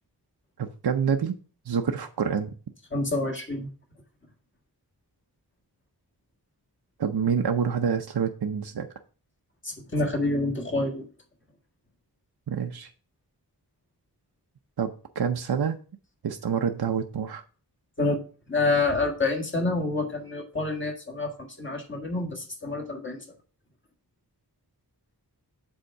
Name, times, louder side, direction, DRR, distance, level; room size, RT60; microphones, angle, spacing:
voice 1, 0.6-1.4 1.7-2.5 7.0-8.9 12.5-12.9 14.8-14.9 15.2-15.8 16.2-17.4, right 7 dB, 70° right, 5 dB, 0.7 m, -27 dB
voice 2, 2.9-3.7 9.6-11.1 18.0-18.2 18.5-23.2, left 2 dB, 30° left, 2 dB, 1.7 m, -27 dB
7.9 x 3.6 x 5.8 m, 0.38 s
wide cardioid pair, 65°, 41 cm